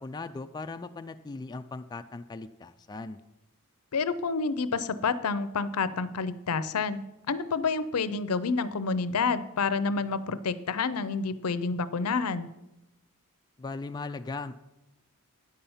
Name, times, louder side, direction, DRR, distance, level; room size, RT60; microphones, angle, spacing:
voice 1, 0.0-3.2 13.6-14.6, left 3 dB, 20° left, 8 dB, 0.3 m, -38 dB
voice 2, 3.9-12.5, left 4 dB, 75° left, 14 dB, 0.6 m, -29 dB
9.4 x 5.6 x 7.0 m, 0.93 s
head